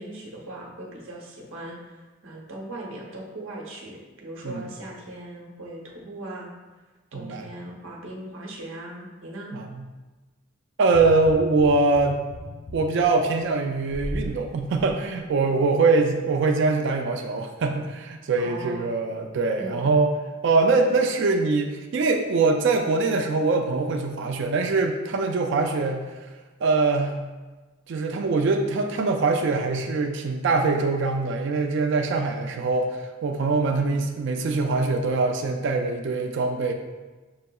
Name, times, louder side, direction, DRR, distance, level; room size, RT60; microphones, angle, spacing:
voice 1, 0.0-6.5 7.1-9.5 18.4-18.9 19.6-19.9, right 1 dB, 80° right, -2 dB, 0.9 m, -39 dB
voice 2, 7.1-7.5 9.5-9.8 10.8-12.2 12.7-20.1 20.4-26.1 26.6-27.1 27.9-36.7, right 3 dB, 60° right, 4 dB, 0.3 m, -23 dB
sound 1, 10.9-14.3 14.8-14.9, equal, 85° left, 1.1 m, -37 dB
6.3 x 2.7 x 2.3 m, 1.2 s
head